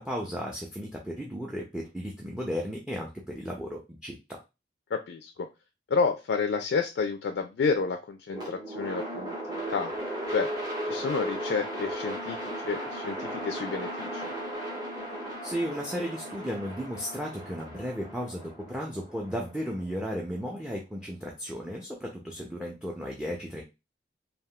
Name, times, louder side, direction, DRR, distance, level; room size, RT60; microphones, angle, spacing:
voice 1, 0.0-4.4 15.4-23.6, equal, 5° right, -1 dB, 0.4 m, -35 dB
voice 2, 4.9-5.5 5.9-9.9 10.3-10.5 10.8-14.3, left 5 dB, 75° left, 5 dB, 0.3 m, -30 dB
sound 1, 8.3-20.4, right 1 dB, 20° right, 1.0 m, -36 dB
3.4 x 2.3 x 2.2 m, 0.25 s
head